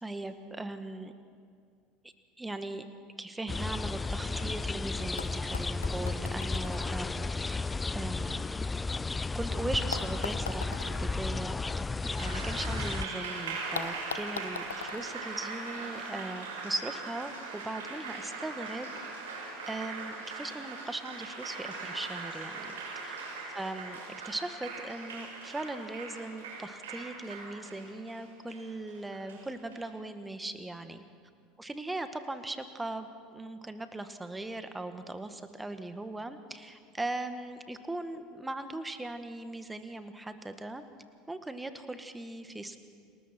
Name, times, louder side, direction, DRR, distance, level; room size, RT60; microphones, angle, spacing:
voice 1, 0.0-1.1 2.4-2.9 3.2-7.7 7.9-8.6 9.4-11.6 12.2-18.9 19.7-22.7 23.0-23.2 23.5-24.0 24.3-31.0 31.6-33.1 33.3-40.8 41.3-42.8, right 2 dB, 10° right, 9 dB, 1.7 m, -39 dB
sound 1, 3.5-13.1, left 3 dB, 15° left, 0.5 m, -33 dB
sound 2, 4.7-4.8 5.2-9.3 9.9-12.9 13.1-13.2 13.7-16.1 17.1-17.2, left 6 dB, 80° left, 1.0 m, -43 dB
Applause, 12.0-29.8, right 4 dB, 70° right, 7.6 m, -41 dB
29.5 x 20.5 x 4.5 m, 2.2 s
figure-of-eight pair, 70°, 0 cm